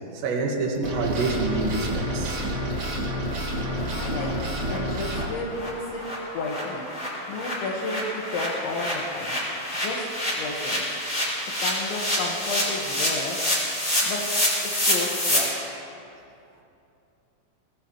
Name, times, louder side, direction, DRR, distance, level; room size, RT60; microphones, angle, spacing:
voice 1, 0.2-2.4, right 3 dB, 75° right, 1 dB, 3.8 m, -27 dB
sound 1, 0.8-5.2, equal, 40° right, 2.5 m, -29 dB
sound 2, 2.4-2.5 2.8-2.9 3.3-3.4 3.7-3.8 4.2-4.3 4.6-4.8 5.1-5.2 5.5-15.4, left 1 dB, 15° left, 5.4 m, -27 dB
voice 2, 3.9-4.3 4.7-6.0 6.3-6.9 7.3-9.4 9.8-10.0 10.4-11.0 11.6-13.4 14.0-14.3 14.6-15.6, left 3 dB, 80° left, -2 dB, 3.7 m, -32 dB
24.0 x 19.5 x 3.1 m, 2.7 s
omnidirectional pair, 5.2 m